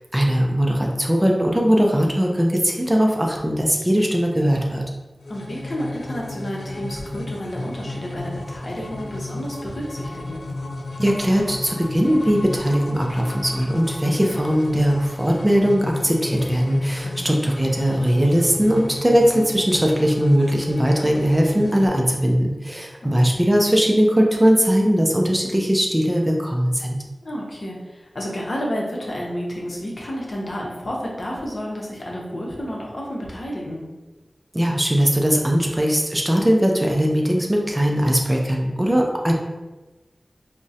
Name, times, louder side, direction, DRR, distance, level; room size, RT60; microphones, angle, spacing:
voice 1, 0.1-4.8 11.0-27.0 34.5-39.3, equal, 15° right, 0 dB, 0.4 m, -19 dB
sound 1, 5.2-21.9, left 2 dB, 85° left, 0.3 m, -32 dB
voice 2, 5.3-10.5 17.0-17.4 23.0-23.2 27.2-33.8, equal, 60° left, -3 dB, 0.7 m, -31 dB
3.6 x 2.1 x 2.7 m, 1.1 s
wide cardioid pair, 75°, 0 cm